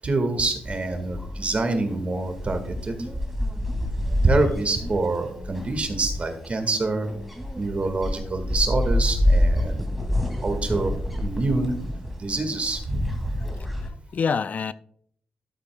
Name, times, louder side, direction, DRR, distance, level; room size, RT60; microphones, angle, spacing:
voice 1, 0.0-3.0 3.8-7.1 7.6-9.8 10.4-11.0 11.2-11.7 12.2-13.4, right 2 dB, 45° right, 1.9 m, -26 dB
sound 1, 0.6-13.9, left 1 dB, 5° right, 2.5 m, -28 dB
voice 2, 13.4-14.7, left 6 dB, 60° left, 0.3 m, -28 dB
12.5 x 7.8 x 2.3 m
cardioid pair, 65°, 3 cm